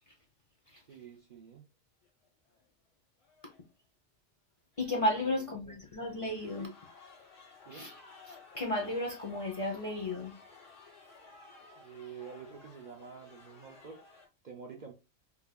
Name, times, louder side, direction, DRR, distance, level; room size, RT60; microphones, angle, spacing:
voice 1, 0.9-1.6 5.2-5.8 6.6-6.8 7.7-7.9 11.8-14.0 14.4-14.9, right 6 dB, 50° right, 0.6 m, -48 dB
sound 1, 2.0-2.2 2.5-2.6 3.2-3.6 4.7-5.3 5.9-14.3, left 4 dB, 90° left, 1.9 m, -56 dB
voice 2, 4.8-6.7 7.7-7.9 8.3-10.3, left 1 dB, 35° left, 0.6 m, -33 dB
4.9 x 2.6 x 2.3 m
omnidirectional pair, 1.2 m